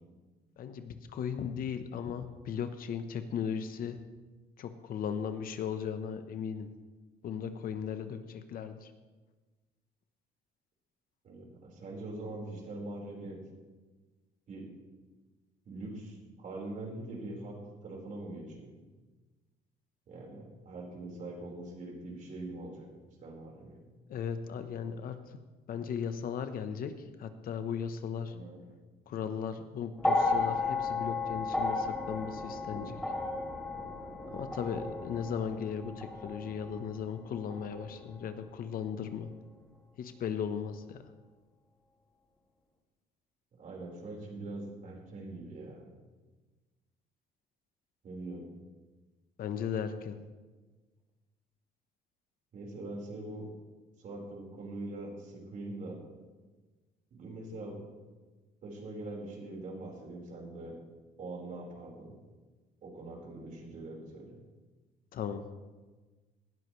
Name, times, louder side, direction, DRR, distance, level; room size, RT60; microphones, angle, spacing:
voice 1, 0.6-4.0 4.6-6.7 7.2-8.9 24.1-25.2 25.7-28.3 29.1-33.0 34.3-39.3 40.0-41.0 49.4-50.2 65.1-65.4, left 7 dB, 60° left, 9 dB, 1.0 m, -37 dB
voice 2, 11.2-13.4 14.5-14.7 15.7-18.7 20.1-22.9 23.2-23.8 28.3-28.6 43.5-45.9 48.0-48.5 52.5-53.5 54.0-56.0 57.1-57.8 58.6-60.8 61.2-62.1 62.8-64.4, right 2 dB, 50° right, -1 dB, 4.6 m, -43 dB
sound 1, 30.0-38.3 39.4-39.5, left 3 dB, 5° left, 2.3 m, -34 dB
19.0 x 12.5 x 3.2 m, 1.3 s
cardioid pair, 110°, 17 cm